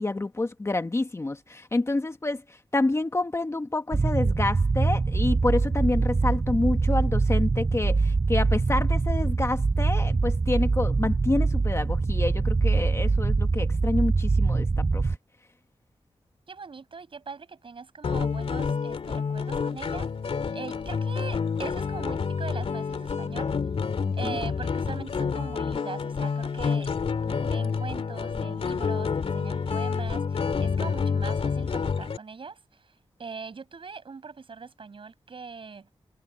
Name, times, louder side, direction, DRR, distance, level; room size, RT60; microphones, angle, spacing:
voice 1, 0.0-2.4 2.7-15.1 24.0-24.4, left 2 dB, 25° left, 1.4 m, -28 dB
sound 1, 3.9-15.2, right 3 dB, 40° right, 5.7 m, -24 dB
voice 2, 16.5-20.1 20.5-23.5 24.1-26.9 27.2-35.9, right 5 dB, 60° right, 7.4 m, -41 dB
sound 2, 18.0-32.2, left 5 dB, 70° left, 2.5 m, -28 dB
wide cardioid pair, 110°, 10 cm